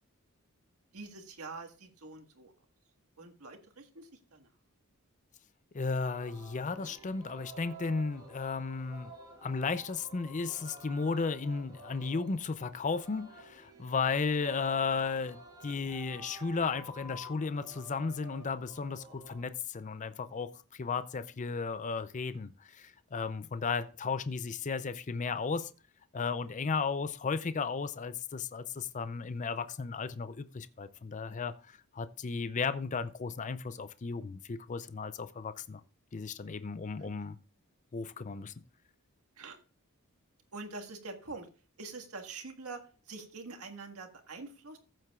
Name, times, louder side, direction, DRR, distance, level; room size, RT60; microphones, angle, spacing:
voice 1, 0.9-2.5 3.2-4.5 36.9-37.1 39.4-39.6 40.5-41.5 41.8-44.8, right 3 dB, 80° right, 1.7 m, -45 dB
voice 2, 5.7-9.1 9.4-20.5 20.8-25.7 26.1-31.5 31.9-35.8 36.1-37.4 37.9-38.5, left 4 dB, 35° left, 0.5 m, -34 dB
Singing, 5.8-19.5, right 2 dB, 20° right, 2.8 m, -51 dB
14.5 x 7.7 x 2.4 m
head